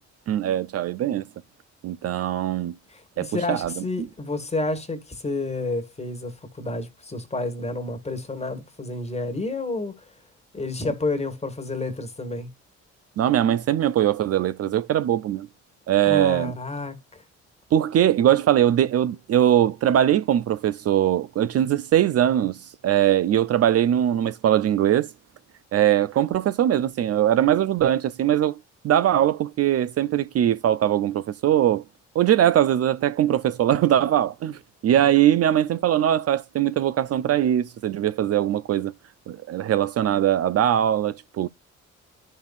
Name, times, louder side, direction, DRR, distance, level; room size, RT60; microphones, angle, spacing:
voice 1, 0.3-1.3 1.8-2.7 3.2-3.8 13.2-15.5 15.9-16.5 17.7-25.1 25.7-28.6 28.8-31.8 32.1-38.9 39.3-41.5, right 11 dB, 55° right, 0.5 m, -21 dB
voice 2, 2.9-9.9 10.5-12.5 16.0-17.2, left 2 dB, 20° left, 1.6 m, -30 dB
11.5 x 5.5 x 2.4 m
cardioid pair, 90°, 30 cm